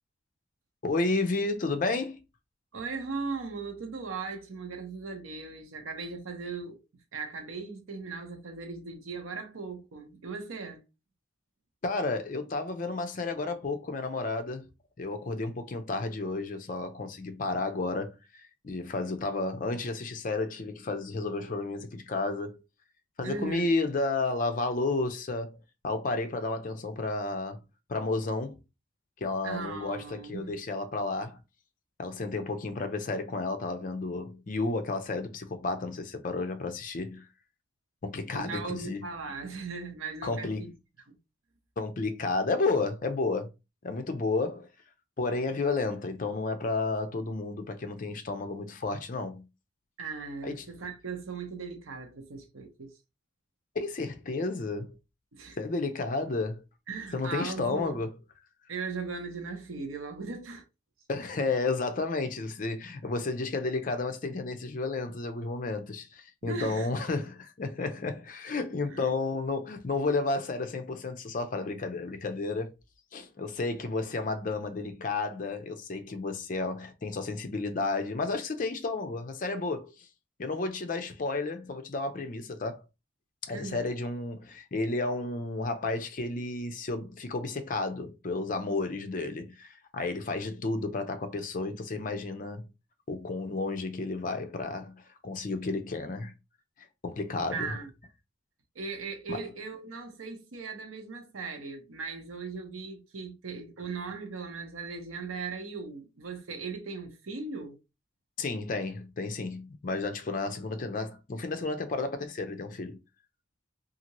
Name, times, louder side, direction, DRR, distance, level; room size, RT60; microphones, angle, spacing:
voice 1, 0.8-2.2 11.8-14.7 15.0-18.2 18.6-22.6 23.2-25.6 25.8-27.6 27.9-28.6 29.2-31.4 32.0-37.2 38.0-39.0 40.2-40.6 41.8-43.5 43.8-44.7 45.2-49.5 50.4-50.7 53.7-55.0 55.6-56.6 57.1-58.1 61.1-72.7 73.1-80.1 80.4-82.8 83.5-92.7 93.1-96.3 97.0-97.7 99.3-99.4 108.4-113.0, left 3 dB, 40° left, 0.5 m, -32 dB
voice 2, 2.7-6.8 7.1-10.8 23.2-23.7 29.4-30.5 38.3-40.7 41.1-41.2 50.0-52.9 55.3-55.6 56.9-58.0 58.7-60.6 66.4-66.9 68.9-69.1 83.5-83.9 97.5-97.9 98.7-107.8, right 4 dB, 90° right, 0.8 m, -38 dB
2.7 x 2.5 x 2.9 m
head